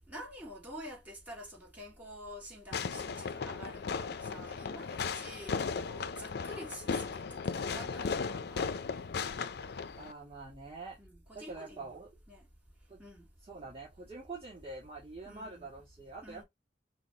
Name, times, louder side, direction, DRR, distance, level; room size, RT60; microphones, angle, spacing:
voice 1, 0.1-9.2 11.0-11.9 12.3-12.5 13.0-13.3 15.3-15.7 16.2-16.4, equal, 10° right, 2.1 m, -48 dB
Fireworks, 2.7-10.1, left 5 dB, 60° left, 0.5 m, -36 dB
voice 2, 10.0-11.0 11.3-12.1 12.9-13.0 13.5-16.4, right 3 dB, 30° right, 1.6 m, -45 dB
6.0 x 2.1 x 3.8 m
head